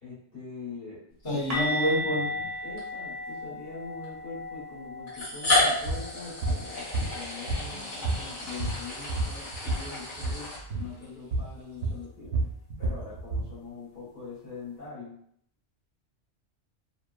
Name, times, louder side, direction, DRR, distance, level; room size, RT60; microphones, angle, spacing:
voice 1, 0.0-1.6 2.6-12.3 12.8-15.2, left 4 dB, 55° left, -9 dB, 1.3 m, -43 dB
voice 2, 1.2-2.5 7.7-7.8, equal, 25° left, -8 dB, 0.9 m, -28 dB
sound 1, 1.5-7.3 7.5-7.8 8.1-8.3 11.5-11.6, left 2 dB, 40° right, 0.7 m, -36 dB
sound 2, 1.7-1.8 2.8-2.9 4.0-4.1 5.1-11.1, left 2 dB, 90° left, 1.3 m, -31 dB
sound 3, 5.8-6.0 6.4-6.6 6.9-7.8 8.0-9.9 10.1-10.4 10.7-10.9 11.3-11.5 11.8-13.5, right 2 dB, 80° right, 0.9 m, -29 dB
2.8 x 2.1 x 2.3 m, 0.68 s
omnidirectional pair, 1.2 m